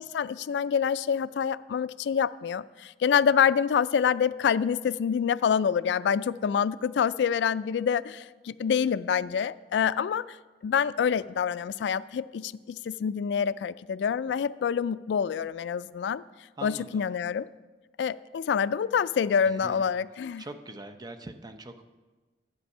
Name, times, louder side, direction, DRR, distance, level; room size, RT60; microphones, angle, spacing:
voice 1, 0.0-10.4 10.6-16.2 16.6-17.5 18.0-20.5, left 7 dB, 75° left, 0.3 m, -26 dB
voice 2, 16.6-17.0 19.5-19.9 20.4-21.8, right 2 dB, 25° right, 0.6 m, -42 dB
11.0 x 8.1 x 5.5 m
head